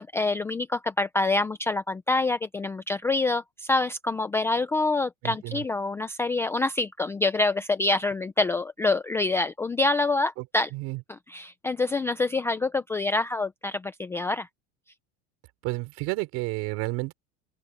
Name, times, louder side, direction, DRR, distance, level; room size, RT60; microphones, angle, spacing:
voice 1, 0.0-10.7 11.1-14.5, left 3 dB, 10° left, 0.4 m, -26 dB
voice 2, 5.2-5.6 10.4-10.5 10.7-11.0 15.6-17.1, right 22 dB, 50° right, 4.2 m, -31 dB
open air
cardioid pair, 165°, 33 cm